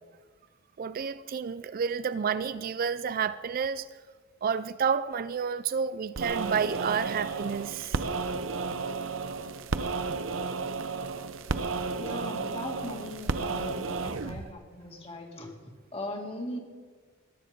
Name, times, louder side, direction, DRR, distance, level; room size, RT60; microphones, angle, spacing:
voice 1, 0.8-3.9 4.4-8.0, right 6 dB, 45° right, 0.4 m, -30 dB
sound 1, 6.1-14.5, right 4 dB, 75° right, 0.7 m, -32 dB
voice 2, 12.0-16.6, left 1 dB, 30° left, 2.4 m, -39 dB
19.5 x 10.0 x 5.3 m
head